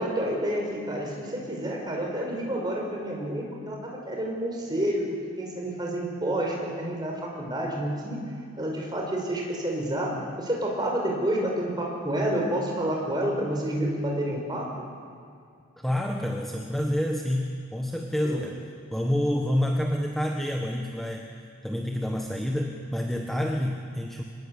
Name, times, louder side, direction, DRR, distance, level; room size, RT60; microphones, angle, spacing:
voice 1, 0.0-8.2 8.6-14.8 18.2-18.4, right 1 dB, 20° right, -1 dB, 5.4 m, -29 dB
voice 2, 15.8-18.6 18.9-24.2, equal, ahead, 0 dB, 1.4 m, -28 dB
25.5 x 21.0 x 8.4 m, 2.3 s
head